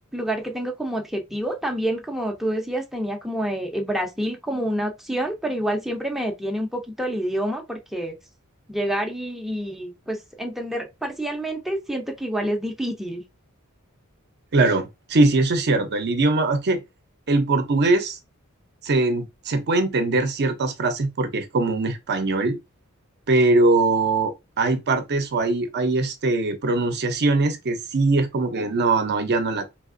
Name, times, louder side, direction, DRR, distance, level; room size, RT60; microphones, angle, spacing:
voice 1, 0.0-8.1 8.7-13.2, right 1 dB, ahead, 0.5 m, -28 dB
voice 2, 14.5-16.8 17.3-18.2 18.8-22.6 23.3-29.7, right 2 dB, 50° right, 0.6 m, -21 dB
3.4 x 2.8 x 2.5 m
head